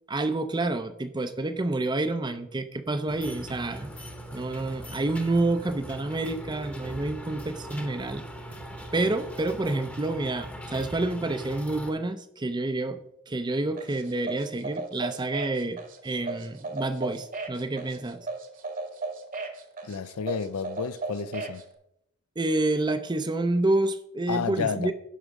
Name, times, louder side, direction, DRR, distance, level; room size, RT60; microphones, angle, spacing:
voice 1, 0.1-3.9 4.3-8.2 8.9-13.0 13.3-18.3 22.4-24.9, right 2 dB, 20° right, 0.5 m, -28 dB
sound 1, 3.1-11.9, right 1 dB, 5° left, 0.9 m, -40 dB
sound 2, 13.8-21.6, right 3 dB, 40° right, 1.2 m, -36 dB
voice 2, 19.8-21.6 24.3-24.9, left 6 dB, 75° left, 0.5 m, -31 dB
10.5 x 6.2 x 4.7 m
head